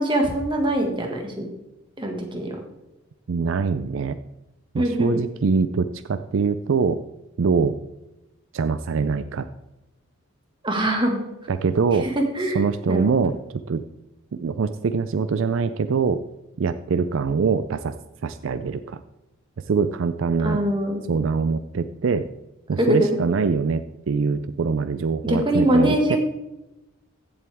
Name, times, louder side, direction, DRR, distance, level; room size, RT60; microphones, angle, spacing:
voice 1, 0.0-1.5 2.0-2.6 4.8-5.1 10.6-11.2 12.0-13.1 20.4-21.0 22.8-23.2 25.2-26.2, right 1 dB, 25° right, 2 dB, 1.8 m, -23 dB
voice 2, 3.3-4.2 4.7-7.0 7.4-7.8 8.5-9.5 11.5-12.1 12.5-13.4 13.7-13.8 14.3-16.2 16.6-17.9 18.2-19.0 19.7-20.6 21.1-22.3 22.7-26.2, right 5 dB, 65° right, 11 dB, 0.4 m, -23 dB
15.5 x 7.8 x 3.5 m, 0.97 s
head